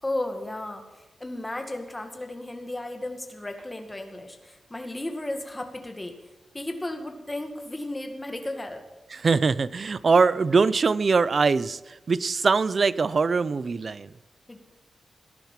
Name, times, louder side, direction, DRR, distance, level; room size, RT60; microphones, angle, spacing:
voice 1, 0.0-6.1 6.5-8.8 14.5-14.6, left 1 dB, 15° left, 5 dB, 2.0 m, -34 dB
voice 2, 9.1-14.1, right 4 dB, 40° right, 17 dB, 0.6 m, -22 dB
18.0 x 10.5 x 7.4 m, 1.1 s
wide cardioid pair, 165°, 0 cm